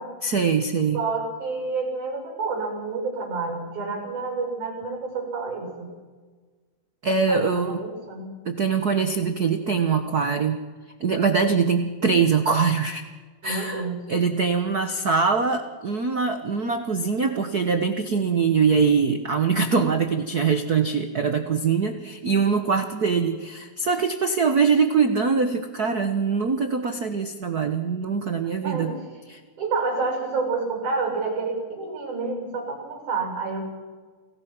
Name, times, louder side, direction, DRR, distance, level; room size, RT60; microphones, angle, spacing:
voice 1, 0.2-1.0 7.0-7.8 8.4-10.6 11.0-13.0 13.4-28.9 29.3-29.4, right 5 dB, 90° right, 7 dB, 0.8 m, -23 dB
voice 2, 0.9-5.9 7.3-8.3 13.4-14.0 28.6-29.0 29.6-33.6, right 4 dB, 70° right, 2 dB, 8.5 m, -29 dB
29.5 x 19.5 x 6.1 m, 1.4 s
omnidirectional pair, 3.7 m